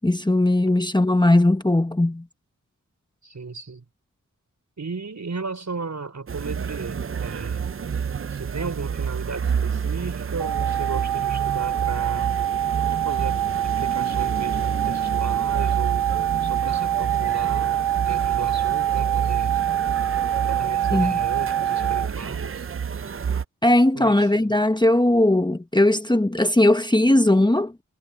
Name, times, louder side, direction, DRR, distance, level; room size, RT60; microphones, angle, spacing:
voice 1, 0.0-2.2 20.9-21.2 23.6-27.7, left 1 dB, 15° left, 1.2 m, -19 dB
voice 2, 3.2-3.8 4.8-7.7 8.3-12.3 12.9-16.0 16.4-19.5 20.4-22.7 24.0-24.5, right 4 dB, 60° right, 5.6 m, -35 dB
Crowd young people through window, 6.3-23.4, right 6 dB, 40° right, 0.6 m, -29 dB
sound 1, 10.4-22.1, right 11 dB, 80° right, 1.1 m, -25 dB
cardioid pair, 50°, 32 cm